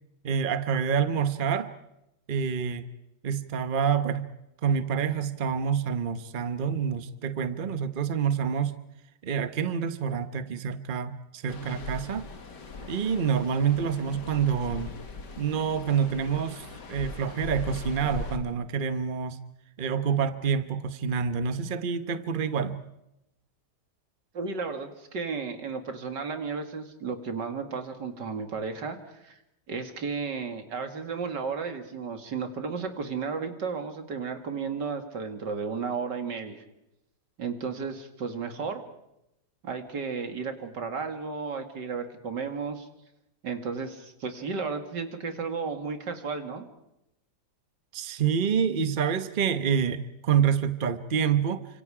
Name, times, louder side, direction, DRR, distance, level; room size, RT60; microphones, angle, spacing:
voice 1, 0.2-1.7 2.3-2.9 3.2-4.3 4.6-8.8 9.2-12.2 12.8-14.9 15.4-19.4 19.8-22.8 47.9-51.7, right 7 dB, 35° right, 11 dB, 1.0 m, -27 dB
sound 1, 11.5-18.4, left 3 dB, 85° left, 2.6 m, -40 dB
voice 2, 24.3-29.4 29.7-36.6 37.4-38.8 39.6-42.9 43.4-46.7, right 5 dB, 90° right, 6 dB, 2.8 m, -33 dB
29.5 x 26.0 x 5.0 m, 0.87 s
omnidirectional pair, 1.8 m